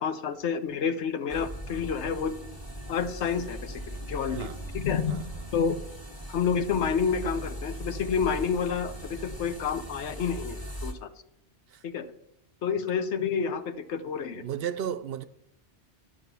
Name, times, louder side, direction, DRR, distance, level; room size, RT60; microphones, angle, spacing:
voice 1, 0.0-2.3 2.9-4.5 4.7-5.8 6.3-11.1 11.8-12.1 12.6-14.4, left 6 dB, 85° left, 1.1 m, -29 dB
sound 1, 1.3-10.9, equal, 20° left, 1.4 m, -39 dB
voice 2, 4.3-4.6 5.1-5.4 11.7-11.8 14.3-15.2, right 9 dB, 65° right, 0.7 m, -34 dB
12.0 x 5.4 x 6.8 m
omnidirectional pair, 1.1 m